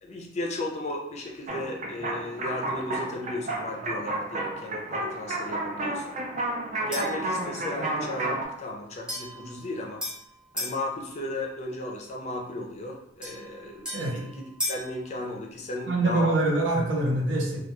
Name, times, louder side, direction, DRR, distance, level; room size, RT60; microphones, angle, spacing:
voice 1, 0.0-6.1 6.8-10.1 10.5-16.4, left 1 dB, 35° left, 0 dB, 0.4 m, -35 dB
sound 1, 1.5-8.4, right 2 dB, 40° right, 0.3 m, -31 dB
sound 2, 6.9-7.3 9.1-10.8 13.2-14.9, left 1 dB, 5° right, 0.7 m, -36 dB
voice 2, 13.9-14.3 15.9-17.6, right 2 dB, 75° right, 0 dB, 0.6 m, -25 dB
2.3 x 2.2 x 2.8 m, 0.79 s
head